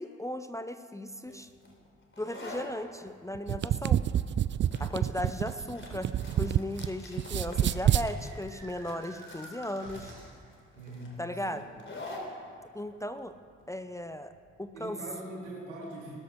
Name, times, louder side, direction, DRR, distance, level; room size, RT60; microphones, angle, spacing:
voice 1, 0.0-1.5 2.2-4.0 4.8-6.1 6.4-10.1 11.2-11.7 12.7-13.3 13.7-14.3 14.6-15.0, left 1 dB, 10° left, 9 dB, 0.7 m, -36 dB
sound 1, 1.3-14.7, left 2 dB, 35° left, 3.8 m, -48 dB
sound 2, 3.3-6.9 7.2-8.1, right 10 dB, 35° right, 0.4 m, -27 dB
sound 3, 7.0-10.5, right 2 dB, 65° right, 3.9 m, -51 dB
voice 2, 10.8-11.6 14.7-16.2, right 1 dB, 80° right, -2 dB, 2.5 m, -42 dB
20.5 x 13.0 x 3.7 m, 2.1 s
figure-of-eight pair, 40°, 35 cm